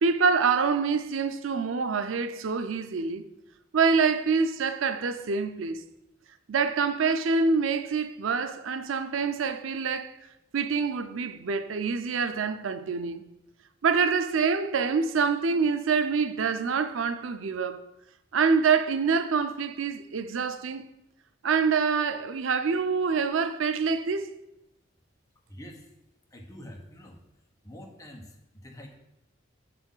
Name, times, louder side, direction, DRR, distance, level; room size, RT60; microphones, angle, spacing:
voice 1, 0.0-3.3 3.7-5.8 6.5-10.1 10.5-13.2 13.8-17.8 18.3-20.9 21.4-24.3, right 5 dB, 90° right, 0.5 m, -26 dB
voice 2, 25.5-25.9 26.3-27.2 27.6-28.9, equal, 20° left, 1.0 m, -46 dB
7.0 x 4.2 x 5.5 m
head